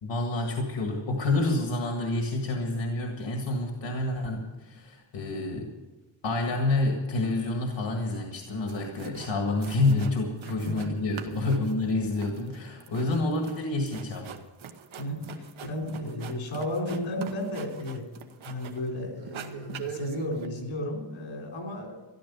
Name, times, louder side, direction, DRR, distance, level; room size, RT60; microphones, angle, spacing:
voice 1, 0.0-5.7 6.2-14.3, left 2 dB, 65° left, 3 dB, 1.8 m, -28 dB
sound 1, 8.4-8.5 8.7-9.3 9.6-10.9 11.2-18.9 19.2-20.5, right 8 dB, 85° right, 1.2 m, -43 dB
voice 2, 10.4-10.7 15.0-18.1 18.4-22.0, left 1 dB, 85° left, 1 dB, 3.9 m, -33 dB
13.5 x 11.5 x 6.9 m, 1.2 s
wide cardioid pair, 135°, 46 cm